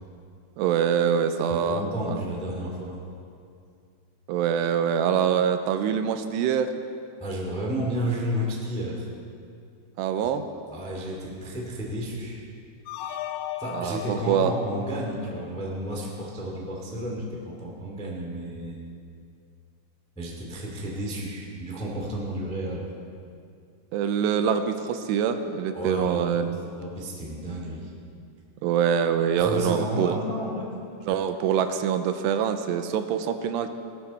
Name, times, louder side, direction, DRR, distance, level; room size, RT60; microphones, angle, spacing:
voice 1, 0.6-1.8 2.1-2.2 4.3-6.7 10.0-10.4 13.7-14.5 23.9-26.6 28.6-30.2 31.1-33.7, right 8 dB, 90° right, 9 dB, 2.8 m, -24 dB
voice 2, 1.5-3.0 7.2-9.1 10.2-10.3 10.7-12.4 13.6-18.8 20.1-22.9 25.7-26.5 26.8-27.9 29.4-30.7, equal, 5° left, -3 dB, 0.5 m, -32 dB
sound 1, 12.9-16.0, left 11 dB, 90° left, 2.8 m, -37 dB
18.0 x 12.5 x 4.3 m, 2.4 s
omnidirectional pair, 4.9 m